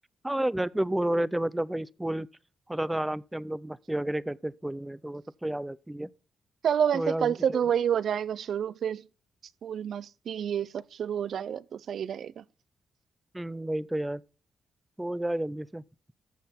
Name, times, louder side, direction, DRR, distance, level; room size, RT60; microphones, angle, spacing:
voice 1, 0.2-2.3 2.7-6.1 6.9-7.6 13.3-14.2 15.0-15.8, right 1 dB, 10° right, 0.5 m, -31 dB
voice 2, 6.6-9.0 9.6-12.4, right 8 dB, 65° right, 0.5 m, -29 dB
14.5 x 5.9 x 4.1 m
cardioid pair, 120°, 0 cm